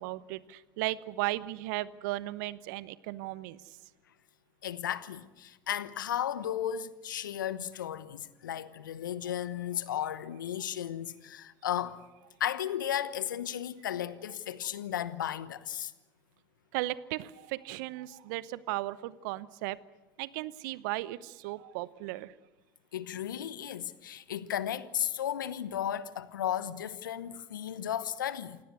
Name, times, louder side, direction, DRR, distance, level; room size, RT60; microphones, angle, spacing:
voice 1, 0.0-3.8 16.7-19.8 20.2-22.3, right 17 dB, 70° right, 0.9 m, -36 dB
voice 2, 4.6-12.0 12.4-15.9 22.9-28.6, left 10 dB, 80° left, 1.0 m, -34 dB
28.0 x 17.5 x 8.1 m
hypercardioid pair, 65°, 11 cm